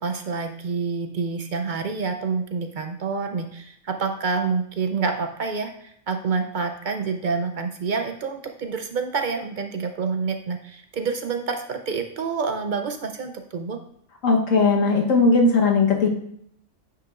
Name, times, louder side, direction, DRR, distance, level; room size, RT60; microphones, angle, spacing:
voice 1, 0.0-13.8, right 5 dB, 60° right, 5 dB, 0.5 m, -28 dB
voice 2, 14.2-16.1, left 3 dB, 85° left, 0 dB, 1.5 m, -18 dB
9.6 x 5.8 x 2.4 m, 0.69 s
omnidirectional pair, 1.3 m